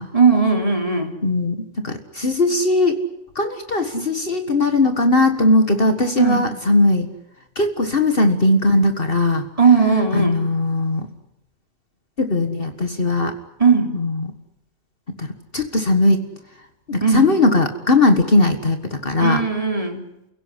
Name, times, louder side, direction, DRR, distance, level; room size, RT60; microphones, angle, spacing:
voice 1, 0.1-1.1 6.2-6.4 9.6-10.5 13.6-13.9 17.0-17.3 19.2-20.0, right 5 dB, 25° right, 3 dB, 3.5 m, -17 dB
voice 2, 1.2-3.0 3.4-7.1 7.6-9.4 10.1-11.1 12.2-13.3 13.9-14.1 15.2-16.3 16.9-19.4, left 2 dB, 45° left, 7 dB, 1.9 m, -19 dB
30.0 x 17.0 x 9.9 m, 0.90 s
omnidirectional pair, 1.4 m